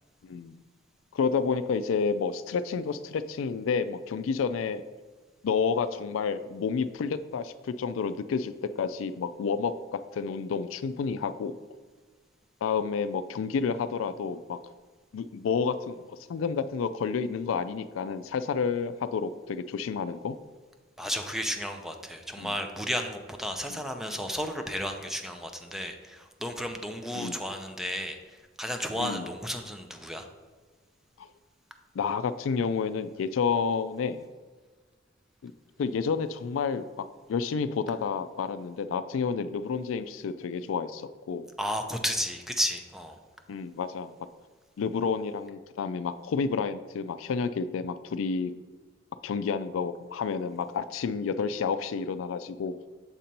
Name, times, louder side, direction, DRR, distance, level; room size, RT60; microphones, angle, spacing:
voice 1, 0.2-0.6 1.1-4.8 5.4-7.5 7.8-11.5 12.6-14.6 15.1-20.4 22.4-22.5 23.7-23.8 27.1-27.4 29.0-29.3 32.0-34.3 35.4-35.5 35.8-36.8 37.3-41.5 43.5-44.1 44.8-48.5 49.2-52.7, left 5 dB, 85° left, 12 dB, 0.3 m, -30 dB
voice 2, 21.0-30.3 41.6-43.2, equal, ahead, 5 dB, 0.5 m, -33 dB
7.3 x 2.9 x 5.2 m, 1.4 s
head